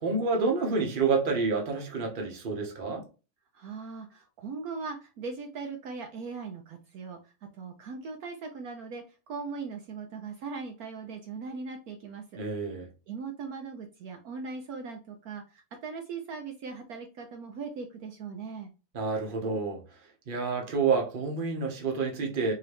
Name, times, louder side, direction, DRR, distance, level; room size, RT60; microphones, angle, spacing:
voice 1, 0.0-3.1 12.4-12.9 18.9-19.8 20.3-22.5, right 4 dB, 40° right, 0.7 m, -28 dB
voice 2, 3.5-12.4 13.1-18.7, right 4 dB, 75° right, 0.8 m, -39 dB
3.8 x 2.8 x 3.3 m
omnidirectional pair, 2.2 m